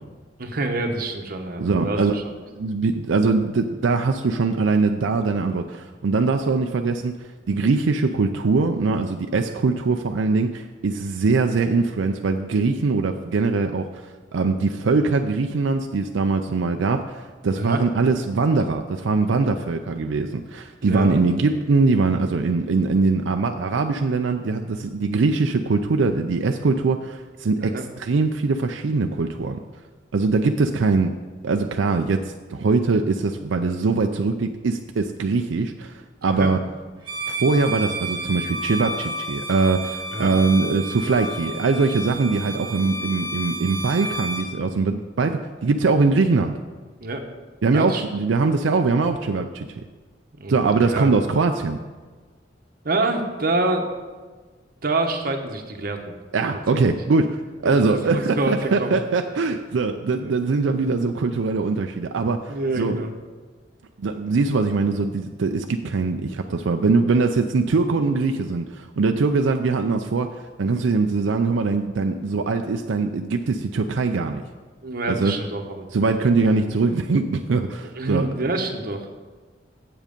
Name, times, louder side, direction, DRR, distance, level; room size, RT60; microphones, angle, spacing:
voice 1, 0.4-2.2 17.5-17.8 20.8-21.2 27.6-27.8 36.2-36.5 40.1-40.3 47.0-47.2 47.7-48.0 50.3-51.1 52.8-53.9 54.8-56.1 57.6-58.9 60.2-60.3 62.5-63.1 74.8-75.9 78.0-79.1, right 2 dB, 50° right, 4 dB, 1.0 m, -27 dB
voice 2, 1.6-2.2 2.6-29.6 30.1-31.1 31.4-36.6 37.3-46.6 47.6-49.8 50.5-51.8 56.3-57.4 57.6-63.0 64.0-74.4 75.1-75.3 75.9-78.3, right 4 dB, 80° right, 5 dB, 0.5 m, -22 dB
Bowed string instrument, 37.0-44.5, right 1 dB, 25° right, 1.7 m, -31 dB
7.8 x 7.4 x 5.2 m, 1.4 s
head